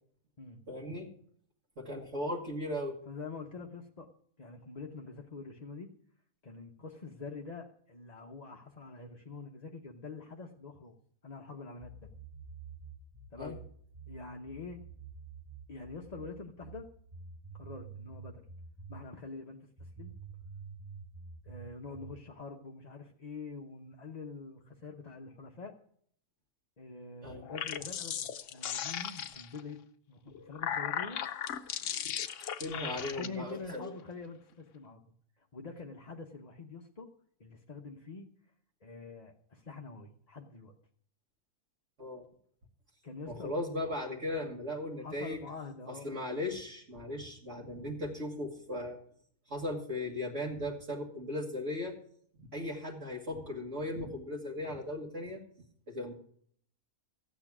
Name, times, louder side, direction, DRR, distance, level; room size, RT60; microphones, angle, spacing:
voice 1, 0.7-1.1 1.8-3.0 13.4-13.6 27.2-27.4 32.6-33.9 42.0-42.2 43.3-45.4 45.9-49.0 49.5-52.0 52.4-55.4 55.9-56.1, left 1 dB, 55° right, -3 dB, 2.0 m, -37 dB
voice 2, 3.1-4.1 4.4-5.9 6.4-10.9 11.2-12.2 13.3-13.6 14.1-14.8 15.7-16.9 17.5-18.4 18.9-20.1 21.4-25.7 26.8-29.8 30.1-31.2 33.2-35.0 35.4-37.1 37.4-38.3 38.8-40.7 43.0-43.5 44.0-44.2 45.0-46.1, left 4 dB, 35° left, 1 dB, 0.8 m, -45 dB
sound 1, 11.8-19.1 19.8-22.3, right 5 dB, 15° right, 1.0 m, -48 dB
sound 2, 27.4-29.6 30.3-33.3, left 9 dB, 60° left, 1.0 m, -37 dB
14.5 x 8.9 x 6.0 m, 0.62 s
omnidirectional pair, 1.6 m